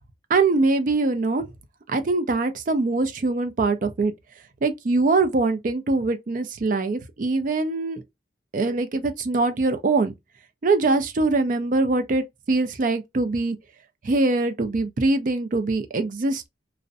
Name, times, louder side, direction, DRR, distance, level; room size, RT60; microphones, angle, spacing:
voice 1, 0.3-1.5 1.9-4.1 4.6-8.0 8.5-10.1 10.6-13.6 14.0-16.5, right 3 dB, 50° right, 0.4 m, -23 dB
2.5 x 2.0 x 2.4 m
head